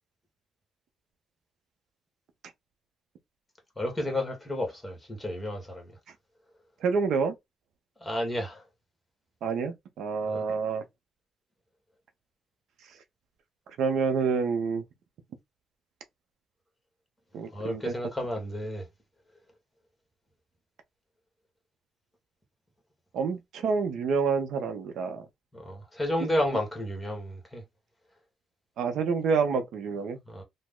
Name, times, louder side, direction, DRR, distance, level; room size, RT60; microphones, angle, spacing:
voice 1, 3.8-5.9 8.0-8.6 10.2-10.4 17.5-18.8 25.5-27.6 30.2-30.4, left 1 dB, 10° left, 1.4 m, -31 dB
voice 2, 6.8-7.3 9.4-10.8 13.8-14.8 17.3-17.9 23.1-25.2 28.8-30.2, right 5 dB, 75° right, 0.6 m, -28 dB
2.9 x 2.1 x 3.6 m
cardioid pair, 90°, 0 cm